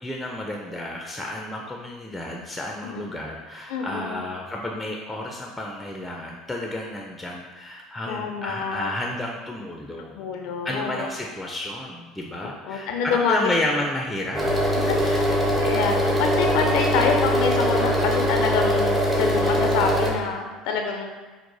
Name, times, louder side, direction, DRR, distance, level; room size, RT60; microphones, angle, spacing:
voice 1, 0.0-10.1 10.6-14.5, left 1 dB, 10° left, 0 dB, 0.4 m, -31 dB
voice 2, 3.7-4.2 8.1-8.9 10.1-11.1 12.4-13.5 14.9-15.3 15.6-21.1, left 5 dB, 70° left, 3 dB, 0.4 m, -26 dB
sound 1, 14.3-20.1, equal, 20° right, 0.8 m, -22 dB
4.5 x 2.0 x 2.7 m, 1.3 s
hypercardioid pair, 80°, 0 cm